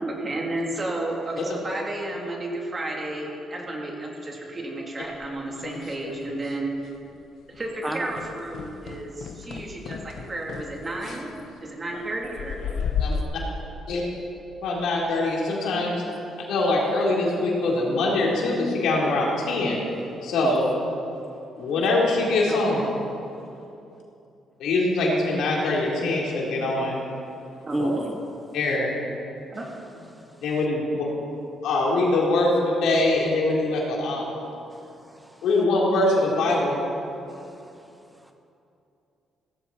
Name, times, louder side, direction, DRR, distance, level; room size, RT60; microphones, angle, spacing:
voice 1, 0.0-6.7 7.5-11.3 11.6-12.6 22.5-22.9 27.7-27.8 29.5-29.7 29.9-30.1, right 2 dB, 30° right, -1 dB, 3.1 m, -32 dB
sound 1, 5.1-6.6 6.8-7.2 7.5-7.7 8.1-13.2, left 6 dB, 70° left, 0.8 m, -34 dB
voice 2, 7.8-8.2 10.8-11.4 12.7-13.3 20.4-20.6 27.7-28.2 30.1-30.4 34.7-35.4 37.3-38.3, right 1 dB, 10° right, 5 dB, 0.8 m, -34 dB
voice 3, 14.6-16.0 16.5-19.8 20.2-20.7 21.6-22.9 24.6-27.0 27.8-27.9 28.5-28.9 30.4-31.1 31.6-34.4 35.4-36.8, left 2 dB, 85° left, -3 dB, 3.6 m, -23 dB
17.0 x 14.5 x 4.3 m, 2.7 s
cardioid pair, 90°, 0 cm